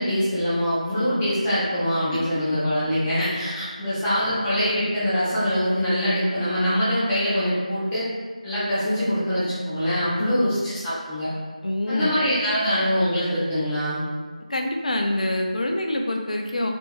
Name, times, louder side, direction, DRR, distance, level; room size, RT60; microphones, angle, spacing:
voice 1, 0.0-8.0 8.4-11.3 11.9-14.0, equal, 5° left, -13 dB, 0.3 m, -24 dB
voice 2, 2.1-2.6 3.2-3.4 3.8-4.0 10.2-10.4 11.6-12.1 14.5-16.7, left 1 dB, 65° left, 3 dB, 0.5 m, -26 dB
3.5 x 2.6 x 3.0 m, 1.5 s
figure-of-eight pair, 170°, 4 cm